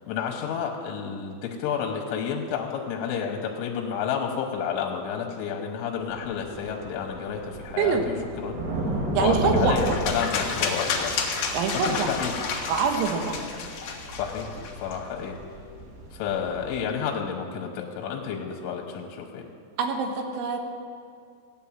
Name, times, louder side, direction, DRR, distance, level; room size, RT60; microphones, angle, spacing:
voice 1, 0.0-8.6 9.2-11.2 11.7-12.4 14.1-15.4 16.1-19.5, left 7 dB, 90° left, 2 dB, 3.5 m, -30 dB
sound 1, 6.0-16.8, right 1 dB, 45° right, 2.5 m, -34 dB
voice 2, 9.2-10.0 11.5-12.1 12.7-13.4 19.8-20.6, right 5 dB, 80° right, 4 dB, 3.6 m, -25 dB
sound 2, 9.8-15.0, left 5 dB, 65° left, 2.5 m, -31 dB
16.5 x 9.5 x 7.3 m, 2.2 s
omnidirectional pair, 5.3 m